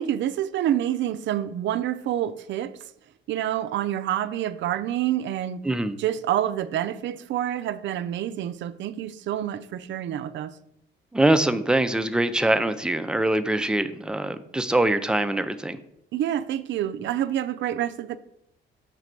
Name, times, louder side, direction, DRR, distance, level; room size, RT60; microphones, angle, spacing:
voice 1, 0.0-2.8 3.3-5.6 6.0-10.5 16.1-18.2, right 11 dB, 70° right, 0.4 m, -27 dB
voice 2, 5.6-6.0 11.1-15.8, right 1 dB, 5° right, 0.4 m, -23 dB
5.9 x 3.1 x 5.1 m
cardioid pair, 90°, 20 cm